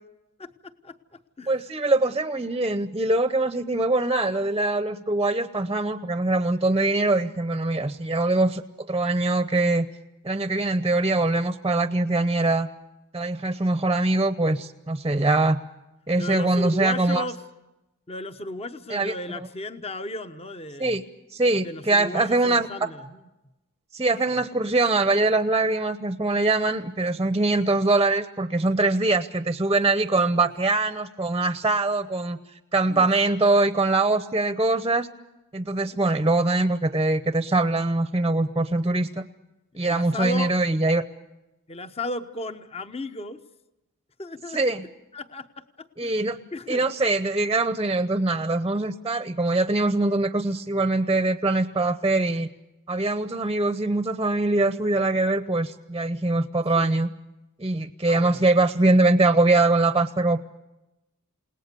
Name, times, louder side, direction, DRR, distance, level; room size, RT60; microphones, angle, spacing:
voice 1, 0.4-1.6 15.3-15.5 16.2-17.4 18.1-21.0 21.6-23.2 30.3-30.4 32.9-33.1 39.8-40.6 41.7-43.4 44.2-44.6 45.1-45.5 45.8-46.8 56.7-57.0 58.1-58.5, left 2 dB, 25° left, 10 dB, 1.0 m, -35 dB
voice 2, 1.5-8.6 8.9-9.9 10.2-12.7 13.1-15.6 16.1-17.2 18.9-19.1 20.8-21.0 21.3-22.7 23.9-32.4 32.7-35.1 35.5-39.2 39.7-41.0 44.5-44.8 46.0-46.4 46.7-52.5 52.9-57.1 57.6-60.4, right 2 dB, 20° right, 12 dB, 0.8 m, -23 dB
29.0 x 18.5 x 6.9 m, 0.98 s
head